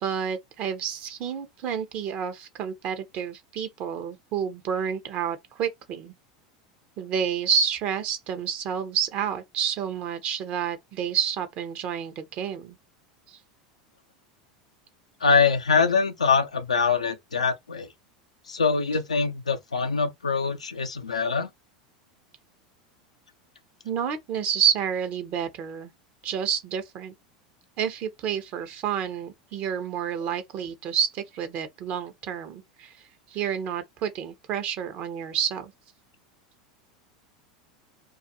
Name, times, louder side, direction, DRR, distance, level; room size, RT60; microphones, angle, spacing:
voice 1, 0.0-6.1 7.0-12.8 13.3-13.4 23.8-25.9 26.2-27.1 27.8-33.0 33.3-35.7, right 8 dB, 45° right, 0.6 m, -29 dB
voice 2, 15.2-17.9 18.5-21.5, left 5 dB, 85° left, 0.4 m, -24 dB
2.3 x 2.2 x 2.7 m
figure-of-eight pair, 85°, 3 cm